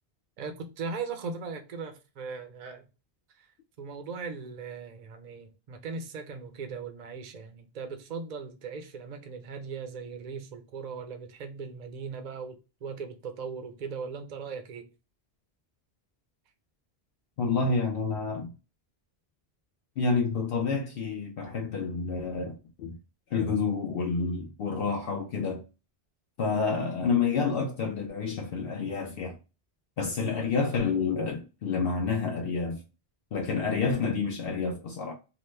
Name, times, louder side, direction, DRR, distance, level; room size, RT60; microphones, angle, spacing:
voice 1, 0.4-2.9 3.3-3.5 3.8-12.6 12.8-14.9, right 5 dB, 55° right, 0.6 m, -38 dB
voice 2, 17.4-18.5 20.0-23.0 23.3-25.6 26.4-29.4 30.0-32.8 33.3-35.1, left 4 dB, 70° left, 0.7 m, -29 dB
2.9 x 2.1 x 3.2 m
omnidirectional pair, 1.0 m